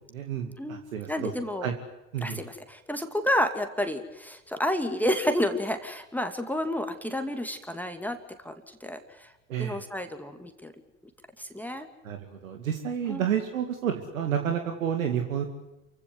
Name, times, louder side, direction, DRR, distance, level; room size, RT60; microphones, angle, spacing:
voice 1, 0.1-1.7 2.1-2.4 9.5-9.8 12.0-15.5, right 8 dB, 80° right, 4 dB, 2.5 m, -30 dB
voice 2, 1.1-1.7 2.2-8.2 8.4-9.3 9.6-10.7 11.4-11.9 13.1-13.2, left 1 dB, 5° left, 6 dB, 2.5 m, -30 dB
28.5 x 16.5 x 9.7 m, 0.99 s
hypercardioid pair, 70°, 39 cm